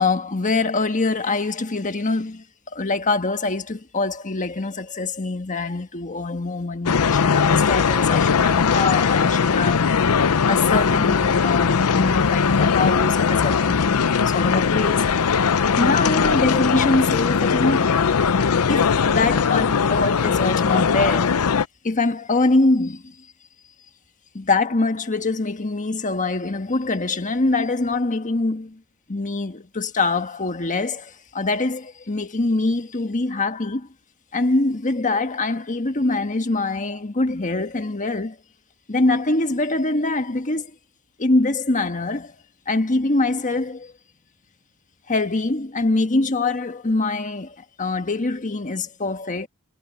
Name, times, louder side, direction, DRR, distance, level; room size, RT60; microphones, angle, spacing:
voice 1, 0.0-2.4 2.7-9.9 10.5-15.1 15.8-18.0 18.7-21.5 21.8-23.1 24.3-28.8 29.1-33.9 34.3-38.4 38.9-40.7 41.2-42.3 42.7-43.9 45.1-49.5, left 3 dB, 35° left, 1.4 m, -24 dB
sound 1, 6.9-21.7, left 6 dB, 85° left, 0.6 m, -19 dB
head